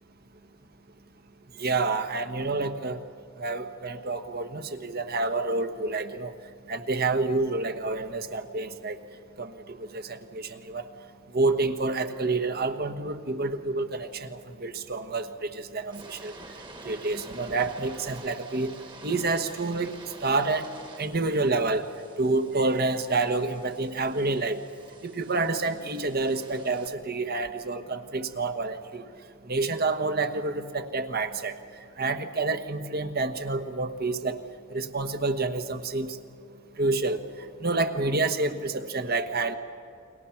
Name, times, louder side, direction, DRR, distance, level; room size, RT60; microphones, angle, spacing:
voice 1, 1.6-3.0 3.4-6.3 6.7-9.0 9.4-10.9 11.3-16.4 16.8-18.7 19.0-19.9 20.2-20.7 21.0-21.8 22.2-24.6 25.0-29.0 29.5-31.6 32.0-34.4 34.7-36.1 36.8-37.2 37.6-39.6, right 3 dB, 50° right, 9 dB, 1.3 m, -28 dB
sound 1, 15.8-26.9, right 2 dB, 20° right, 1.5 m, -48 dB
30.0 x 23.0 x 5.9 m, 2.4 s
head